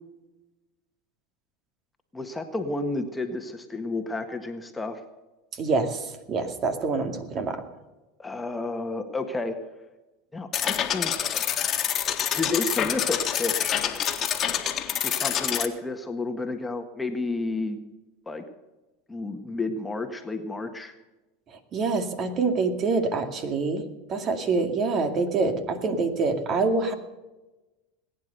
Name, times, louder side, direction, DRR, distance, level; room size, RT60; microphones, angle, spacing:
voice 1, 2.1-5.0 8.2-9.6 10.3-11.4 12.3-13.9 15.0-17.8 18.2-18.4 19.1-20.9, left 3 dB, 10° left, 5 dB, 1.6 m, -31 dB
voice 2, 5.5-7.6 21.5-26.9, right 3 dB, 40° right, 6 dB, 2.3 m, -26 dB
sound 1, 10.5-15.7, left 9 dB, 40° left, 1.8 m, -27 dB
19.5 x 9.7 x 6.8 m, 1.1 s
hypercardioid pair, 105°, 0 cm